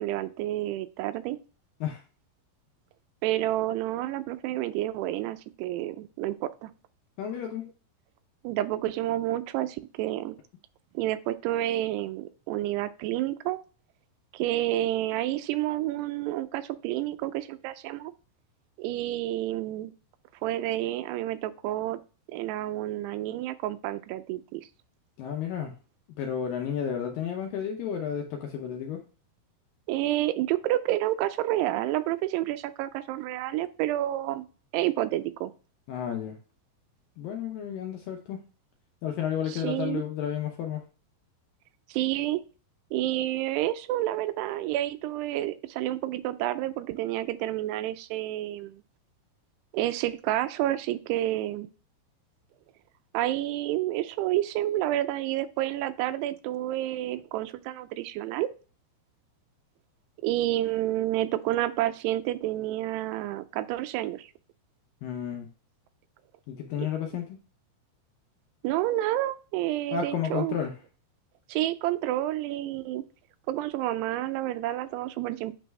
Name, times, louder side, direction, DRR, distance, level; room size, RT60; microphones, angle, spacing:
voice 1, 0.0-1.4 3.2-6.7 8.4-10.4 10.9-13.6 14.3-18.1 18.8-19.9 20.4-22.0 22.3-24.7 29.9-34.5 34.7-35.5 39.5-40.0 41.9-42.4 42.9-48.8 49.7-51.7 53.1-58.5 60.2-64.3 66.8-66.9 68.6-70.6 71.5-73.0 73.5-75.5, right 14 dB, 85° right, 12 dB, 2.6 m, -29 dB
voice 2, 7.2-7.7 25.2-25.7 26.2-29.0 35.9-36.4 37.2-38.4 39.0-40.8 65.0-65.5 66.5-67.2 69.9-70.7, left 8 dB, 80° left, 2 dB, 2.1 m, -32 dB
8.7 x 3.4 x 3.2 m, 0.35 s
omnidirectional pair, 4.7 m